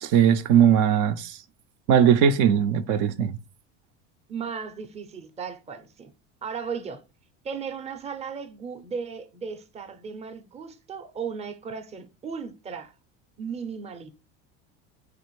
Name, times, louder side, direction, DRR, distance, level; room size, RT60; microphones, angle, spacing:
voice 1, 0.0-1.4 1.9-3.4, right 8 dB, 65° right, 0.5 m, -19 dB
voice 2, 4.3-6.1 6.4-7.0 7.4-12.9 13.4-14.1, right 6 dB, 20° right, 0.5 m, -36 dB
4.9 x 3.3 x 3.1 m
supercardioid pair, 105°, 35 cm